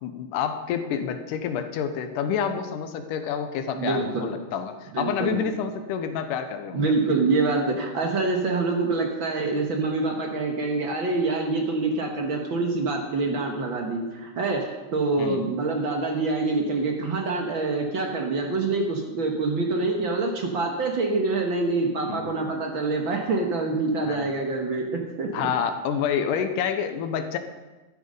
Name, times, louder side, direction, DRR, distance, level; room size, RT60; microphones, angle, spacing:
voice 1, 0.0-6.9 15.2-15.4 22.1-22.6 24.0-24.3 25.3-27.4, left 7 dB, 85° left, 8 dB, 2.4 m, -28 dB
voice 2, 3.7-4.3 4.9-5.4 6.7-25.5, right 3 dB, 55° right, 1 dB, 1.5 m, -26 dB
12.5 x 9.4 x 5.4 m, 1.2 s
omnidirectional pair, 3.7 m